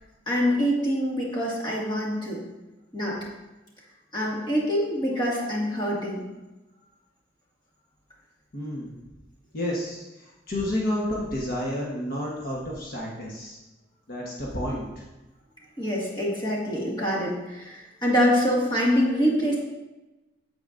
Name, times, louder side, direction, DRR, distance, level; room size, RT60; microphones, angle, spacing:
voice 1, 0.3-2.4 2.9-3.2 4.1-6.2 15.8-19.6, equal, 25° left, -5 dB, 1.9 m, -25 dB
voice 2, 8.5-8.9 9.5-13.6 14.1-15.0, left 1 dB, 55° left, -4 dB, 1.2 m, -30 dB
8.8 x 7.9 x 2.6 m, 1.1 s
head